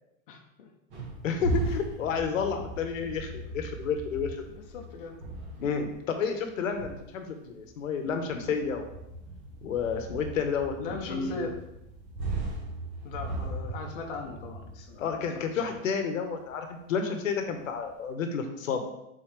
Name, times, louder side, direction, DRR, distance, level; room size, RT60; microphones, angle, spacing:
voice 1, 0.3-0.7 4.5-5.2 10.8-11.5 13.0-15.8, left 4 dB, 40° left, 0 dB, 0.9 m, -39 dB
sound 1, 0.9-15.9 16.3-16.5 17.3-17.9, right 2 dB, 35° right, 1.8 m, -38 dB
voice 2, 1.2-4.4 5.6-8.9 9.6-11.5 15.0-18.9, left 6 dB, 70° left, 5 dB, 1.1 m, -31 dB
7.5 x 4.2 x 3.3 m, 0.86 s
supercardioid pair, 165°, 41 cm